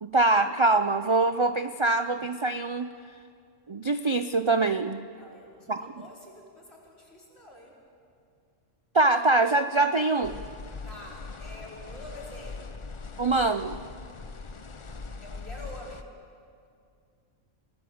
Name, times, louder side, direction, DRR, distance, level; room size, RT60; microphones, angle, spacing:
voice 1, 0.0-2.9 3.7-5.0 5.7-5.9 8.9-10.4 13.2-13.8, right 3 dB, 35° right, 9 dB, 0.4 m, -24 dB
voice 2, 5.1-7.8 10.8-12.8 15.2-16.1, left 1 dB, 55° left, -3 dB, 5.3 m, -47 dB
sound 1, 10.2-16.0, left 4 dB, 30° left, 0.6 m, -41 dB
29.0 x 18.0 x 7.8 m, 2.3 s
omnidirectional pair, 1.3 m